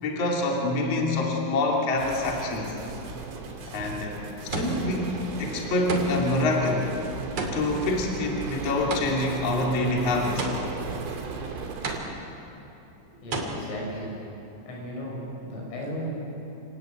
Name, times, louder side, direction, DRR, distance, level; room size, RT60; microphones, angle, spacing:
voice 1, 0.0-2.7 3.7-6.9 7.5-10.5, left 2 dB, 40° left, -1 dB, 3.0 m, -26 dB
sound 1, 2.0-12.0, right 4 dB, 75° right, 5.6 m, -36 dB
sound 2, 3.5-3.9 4.5-5.1 5.9-6.4 7.4-9.4 10.4-11.0 11.8-12.4 13.3-13.4, right 2 dB, 40° right, 3.1 m, -32 dB
voice 2, 13.0-14.1 14.7-16.1, equal, 80° left, -2 dB, 8.9 m, -35 dB
28.0 x 19.0 x 9.1 m, 2.9 s
omnidirectional pair, 5.6 m